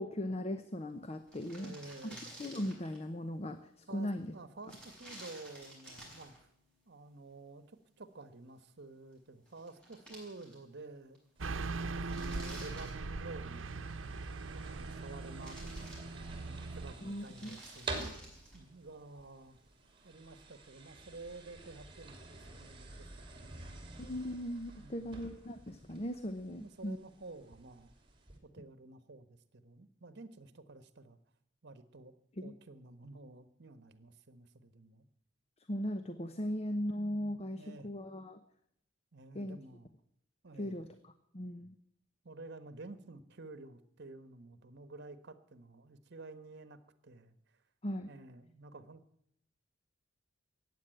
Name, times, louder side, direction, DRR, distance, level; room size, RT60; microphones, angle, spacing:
voice 1, 0.0-1.8 2.0-4.3 17.0-17.6 24.0-27.0 32.4-32.5 35.7-38.4 39.3-39.6 40.6-41.7 47.8-48.1, equal, 35° left, 9 dB, 0.8 m, -38 dB
sound 1, 0.9-1.0 1.2-3.1 4.6-6.4 9.1-9.2 9.5-10.8 11.1-11.2 11.8-13.6 14.5-15.1 15.4-16.6 17.1-18.7, right 1 dB, 5° left, 6.1 m, -53 dB
voice 2, 1.5-2.3 3.9-6.5 6.9-11.2 11.8-13.9 14.3-16.1 16.4-18.0 18.5-19.6 20.0-23.8 24.8-25.2 26.5-27.9 28.4-31.2 31.6-35.1 37.5-37.9 39.1-39.9 40.4-40.9 42.2-47.6 48.0-49.0, right 2 dB, 60° right, 13 dB, 1.2 m, -51 dB
sound 2, 11.4-28.4, right 2 dB, 25° right, 2.9 m, -50 dB
Car passing by / Truck, 11.4-16.9, right 3 dB, 90° right, 0.8 m, -40 dB
14.5 x 9.4 x 9.1 m, 0.71 s
head